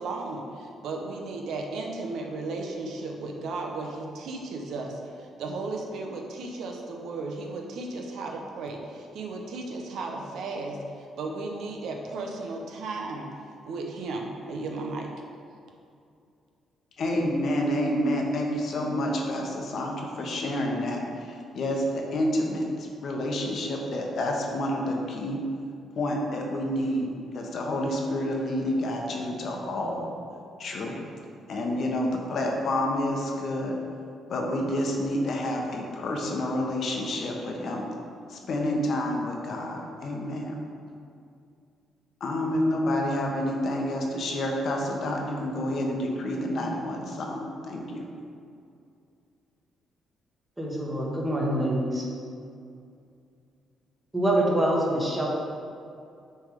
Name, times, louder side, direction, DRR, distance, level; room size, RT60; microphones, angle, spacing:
voice 1, 0.0-13.3 13.7-15.1, right 3 dB, 75° right, 1 dB, 0.8 m, -35 dB
voice 2, 17.0-25.4 26.0-30.1 30.6-30.9 31.5-33.8 34.3-37.8 38.3-40.6 42.2-48.1, left 1 dB, 60° left, 0 dB, 1.0 m, -29 dB
voice 3, 50.6-52.0 54.1-55.3, right 1 dB, 10° right, -3 dB, 1.3 m, -25 dB
6.4 x 3.5 x 5.1 m, 2.4 s
cardioid pair, 90°, 0 cm